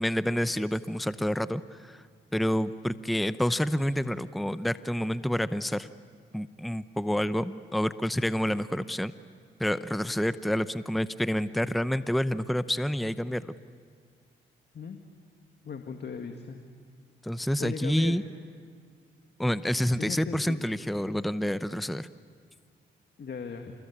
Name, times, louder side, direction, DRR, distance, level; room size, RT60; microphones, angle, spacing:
voice 1, 0.0-2.0 2.3-5.9 6.3-9.1 9.6-13.5 17.2-18.2 19.4-22.1, equal, ahead, 14 dB, 0.8 m, -28 dB
voice 2, 15.6-16.6 17.6-18.2 19.9-20.6 23.2-23.7, left 5 dB, 55° left, 5 dB, 2.0 m, -37 dB
28.0 x 21.0 x 8.6 m, 2.1 s
supercardioid pair, 50°, 21 cm